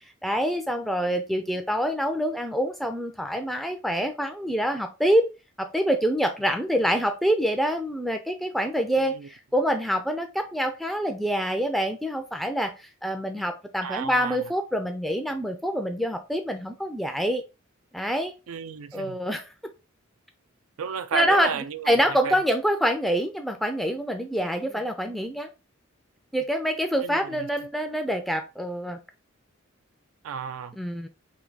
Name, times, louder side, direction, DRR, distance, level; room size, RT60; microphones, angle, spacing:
voice 1, 0.2-5.3 5.6-17.4 17.9-18.3 18.9-19.5 21.1-25.5 26.3-29.0 30.8-31.1, equal, ahead, 0.3 m, -26 dB
voice 2, 9.0-9.3 13.8-14.4 18.5-19.2 20.8-22.4 27.0-27.5 30.2-30.7, right 7 dB, 85° right, 0.4 m, -33 dB
3.4 x 2.7 x 3.8 m
head